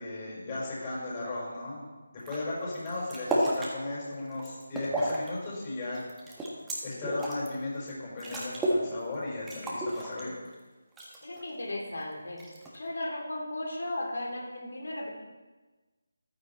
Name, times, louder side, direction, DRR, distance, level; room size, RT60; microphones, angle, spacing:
voice 1, 0.0-1.8 2.1-6.0 6.8-10.3, left 2 dB, 25° left, -5 dB, 5.2 m, -36 dB
sound 1, 2.2-2.4 2.7-3.7 4.2-5.3 5.6-7.5 7.9-8.0 8.2-8.9 9.1-9.2 9.5-10.5 11.0-11.5 12.4-12.9, right 1 dB, 5° right, 1.7 m, -31 dB
voice 2, 11.2-12.5 12.7-15.1, left 1 dB, 60° left, 0 dB, 3.6 m, -35 dB
14.5 x 11.5 x 4.3 m, 1.2 s
figure-of-eight pair, 155°, 0 cm